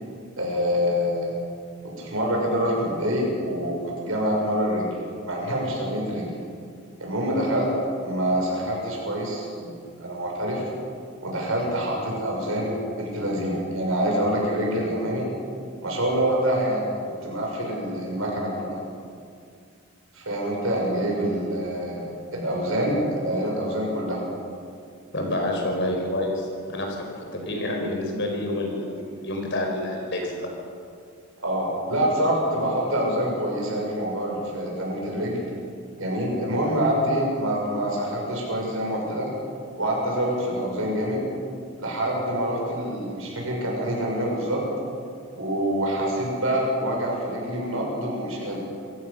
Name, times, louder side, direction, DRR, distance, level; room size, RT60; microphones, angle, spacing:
voice 1, 0.4-1.3 1.8-4.9 5.3-6.3 7.0-7.7 8.0-10.6 11.2-15.3 15.8-16.9 17.2-18.8 20.1-22.1 22.3-24.2 31.4-35.4 36.0-39.3 39.8-41.2 41.8-44.6 45.4-48.6, equal, 70° right, -1 dB, 6.8 m, -26 dB
voice 2, 25.1-30.5, left 1 dB, 50° left, 1 dB, 5.1 m, -28 dB
27.0 x 16.0 x 6.8 m, 2.3 s
head